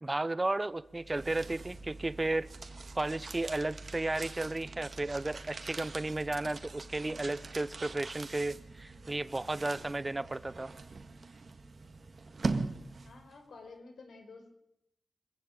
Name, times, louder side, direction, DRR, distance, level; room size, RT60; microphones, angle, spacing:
voice 1, 0.0-2.5 2.9-10.7, right 2 dB, 25° right, 17 dB, 0.8 m, -33 dB
sound 1, 0.8-13.4, right 3 dB, 50° right, 2.0 m, -42 dB
voice 2, 13.0-14.5, left 3 dB, 85° left, 6 dB, 5.2 m, -51 dB
24.5 x 15.5 x 9.0 m, 0.80 s
wide cardioid pair, 110°, 0 cm